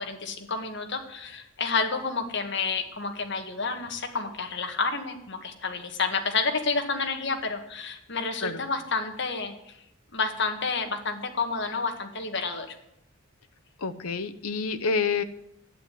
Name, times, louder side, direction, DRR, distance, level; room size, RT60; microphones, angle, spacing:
voice 1, 0.0-9.8 10.1-12.7, left 4 dB, 50° left, 5 dB, 1.8 m, -30 dB
voice 2, 13.8-15.2, left 5 dB, 80° left, 9 dB, 0.9 m, -28 dB
11.0 x 9.3 x 9.5 m, 0.81 s
head